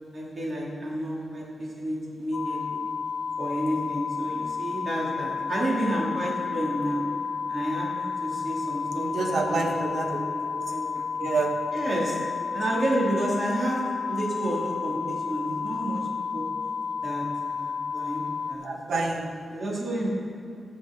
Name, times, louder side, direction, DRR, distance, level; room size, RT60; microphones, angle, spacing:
voice 1, 0.1-2.8 3.4-7.0 7.5-11.3 11.7-12.2 12.5-13.8 14.1-16.0 16.3-16.4 17.0-17.2 17.5-18.2 18.5-18.7 19.5-20.2, right 1 dB, 40° right, -4 dB, 2.4 m, -30 dB
sound 1, 2.3-18.6, left 5 dB, 65° left, 0.6 m, -32 dB
voice 2, 9.0-10.2 10.5-11.6 18.6-19.3, right 3 dB, 70° right, 3 dB, 1.1 m, -29 dB
16.0 x 6.1 x 3.7 m, 2.7 s
wide cardioid pair, 130°, 0 cm